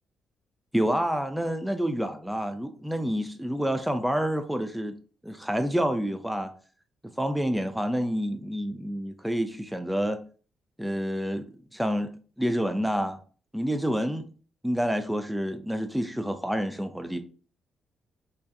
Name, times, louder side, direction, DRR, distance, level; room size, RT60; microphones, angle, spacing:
voice 1, 0.7-4.9 5.2-6.5 7.0-10.2 10.8-11.5 11.7-12.1 12.4-13.2 13.5-14.3 14.6-17.2, equal, 5° right, 0.3 m, -28 dB
2.5 x 2.2 x 2.4 m
hypercardioid pair, 40°, 0 cm